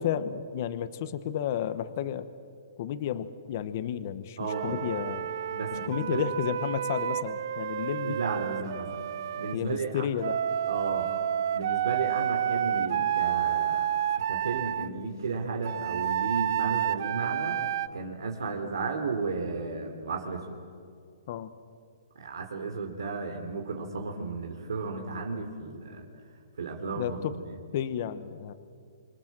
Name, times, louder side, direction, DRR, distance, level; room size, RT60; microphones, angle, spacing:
voice 1, 0.0-2.3 2.8-5.3 5.7-8.2 9.5-10.4 21.3-21.5 27.0-27.3 27.7-28.5, left 9 dB, 35° left, 12 dB, 1.1 m, -32 dB
voice 2, 4.4-4.8 5.5-6.2 8.0-8.9 9.3-10.1 10.7-11.1 11.5-13.9 14.3-17.6 17.9-20.6 22.2-26.1 26.6-27.5, right 4 dB, 85° right, 2 dB, 3.5 m, -34 dB
Wind instrument woodwind instrument, 4.5-9.6 10.2-14.9 15.6-17.9, right 10 dB, 45° right, 0.8 m, -30 dB
26.5 x 26.5 x 7.6 m, 2.3 s
hypercardioid pair, 170°, 2 cm